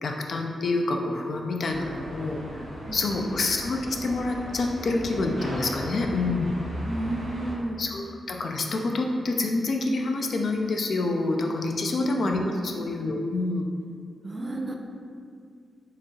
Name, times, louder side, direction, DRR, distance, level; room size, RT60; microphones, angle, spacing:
voice 1, 0.0-2.4 2.9-6.5 7.8-13.7, left 2 dB, 60° left, 2 dB, 0.4 m, -27 dB
sound 1, 1.7-7.5, equal, 75° right, 1.4 m, -37 dB
voice 2, 2.9-3.5 6.9-7.8 11.9-12.1 12.5-12.9 14.2-14.8, right 2 dB, 30° right, 2 dB, 0.4 m, -33 dB
4.5 x 2.3 x 3.1 m, 2.2 s
cardioid pair, 95°, 0 cm